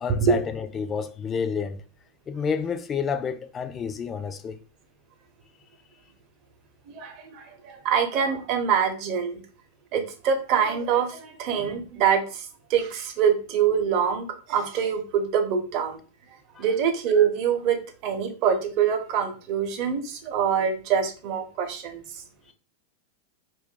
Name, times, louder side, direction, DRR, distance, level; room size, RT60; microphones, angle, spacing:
voice 1, 0.0-1.8 2.3-4.6 16.6-16.7, left 6 dB, 25° left, 0.4 m, -29 dB
voice 2, 6.9-9.4 9.9-16.0 16.6-22.0, right 7 dB, 50° right, 0.7 m, -25 dB
2.5 x 2.2 x 3.7 m
hypercardioid pair, 100°, 0 cm